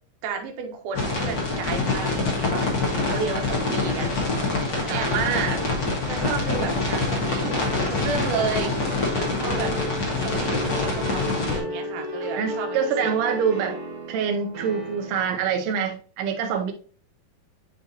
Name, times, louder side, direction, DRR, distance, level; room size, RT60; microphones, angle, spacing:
voice 1, 0.2-5.6 6.1-7.6 7.9-8.8 9.1-13.1, right 6 dB, 70° right, 3 dB, 2.3 m, -32 dB
sound 1, 0.9-11.6, left 3 dB, 55° left, 1.2 m, -25 dB
sound 2, 7.3-15.6, equal, 50° right, 1.7 m, -35 dB
voice 2, 12.4-13.8 14.1-16.7, right 7 dB, 90° right, 4 dB, 2.8 m, -25 dB
9.7 x 3.6 x 2.8 m, 0.41 s
omnidirectional pair, 4.4 m